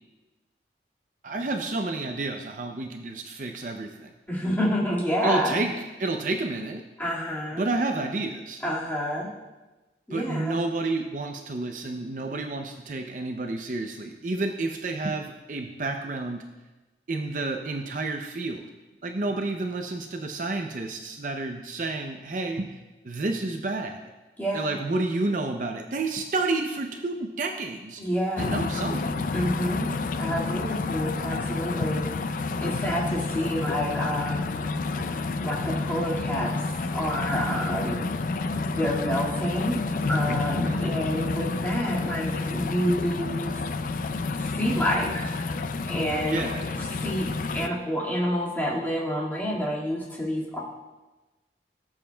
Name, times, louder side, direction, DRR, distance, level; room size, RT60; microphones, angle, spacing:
voice 1, 1.2-4.1 5.2-6.8 7.5-8.6 10.1-16.4 17.1-18.6 19.0-22.8 23.0-24.0 24.5-28.0 28.4-29.2 40.7-41.0 46.3-46.7, right 2 dB, 45° right, 3 dB, 0.5 m, -30 dB
voice 2, 4.3-5.6 7.0-7.7 8.6-9.3 10.1-10.6 24.4-24.7 28.0-28.5 29.3-29.9 30.2-34.6 35.4-38.1 38.7-43.6 44.4-45.4 45.9-46.5 47.0-50.6, equal, 10° left, -6 dB, 1.9 m, -28 dB
sound 1, 28.4-47.7, left 3 dB, 45° left, 0.4 m, -29 dB
17.0 x 7.4 x 2.3 m, 1.1 s
head